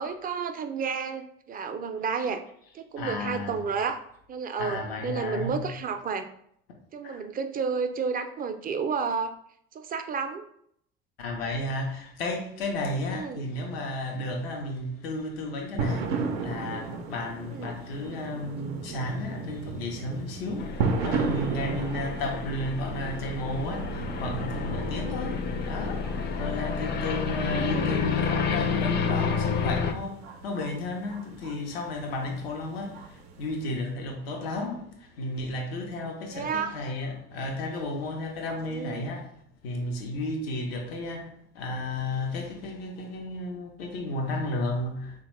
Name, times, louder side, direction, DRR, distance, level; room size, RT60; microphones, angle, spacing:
voice 1, 0.0-2.4 2.7-4.0 4.3-6.3 6.9-9.3 9.7-10.4 13.1-13.5 17.5-17.7 27.3-28.1 36.3-36.8 38.6-39.1, right 5 dB, 30° right, 0.4 m, -31 dB
voice 2, 3.0-3.7 4.6-5.7 7.0-7.2 11.2-16.1 16.4-39.3 39.6-45.2, left 2 dB, 85° left, 0.6 m, -33 dB
sound 1, 15.8-33.8, right 4 dB, 85° right, 0.5 m, -35 dB
sound 2, 20.6-29.9, left 5 dB, 35° left, 0.4 m, -30 dB
3.4 x 2.2 x 3.0 m
hypercardioid pair, 70°, 29 cm